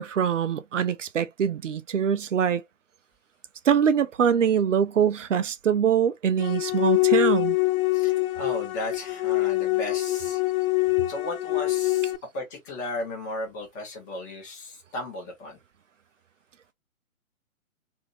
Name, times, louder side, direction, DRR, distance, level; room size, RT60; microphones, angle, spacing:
voice 1, 0.0-2.6 3.7-7.6, right 8 dB, 60° right, 0.5 m, -23 dB
sound 1, 6.4-12.2, left 20 dB, 75° left, 0.5 m, -24 dB
voice 2, 7.9-10.4 11.1-15.6, left 2 dB, 10° left, 0.7 m, -35 dB
2.9 x 2.6 x 2.6 m
figure-of-eight pair, 140°, 43 cm